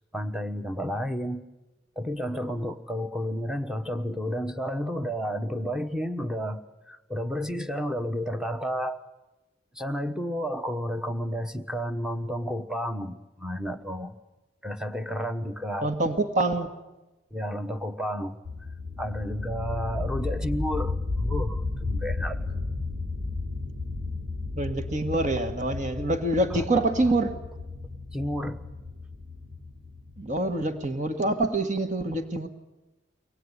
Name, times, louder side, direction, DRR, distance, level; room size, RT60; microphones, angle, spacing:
voice 1, 0.1-1.5 2.0-9.0 9.7-14.1 14.6-15.9 17.3-18.4 19.0-22.4 26.5-26.8 28.1-28.6, equal, 5° right, 9 dB, 1.1 m, -31 dB
voice 2, 15.8-16.7 24.6-27.4 30.2-32.5, right 2 dB, 40° right, 8 dB, 1.8 m, -26 dB
sound 1, 18.4-30.8, left 3 dB, 80° right, 4.4 m, -33 dB
24.0 x 18.5 x 9.8 m, 1.1 s
head